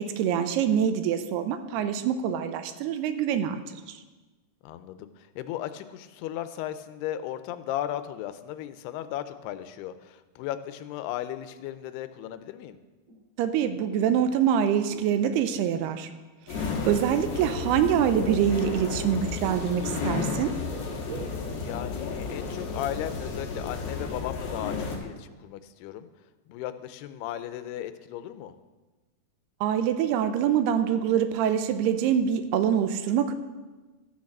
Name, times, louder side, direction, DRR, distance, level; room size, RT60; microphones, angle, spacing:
voice 1, 0.0-3.6 3.9-4.0 13.4-16.1 16.5-20.5 29.6-33.3, right 9 dB, 90° right, 10 dB, 2.7 m, -25 dB
voice 2, 4.6-12.8 18.8-19.2 21.5-26.1 26.5-28.5, left 12 dB, 90° left, 11 dB, 2.7 m, -36 dB
sound 1, 13.1-13.2 13.5-14.3 14.6-15.8 16.5-17.2 18.1-20.2 20.5-22.6 23.0-23.2 23.6-24.6 24.9-25.0, right 6 dB, 60° right, 2.8 m, -44 dB
sound 2, 16.5-25.0, left 4 dB, 50° left, 1.9 m, -33 dB
13.5 x 6.5 x 7.2 m, 1.2 s
omnidirectional pair, 4.6 m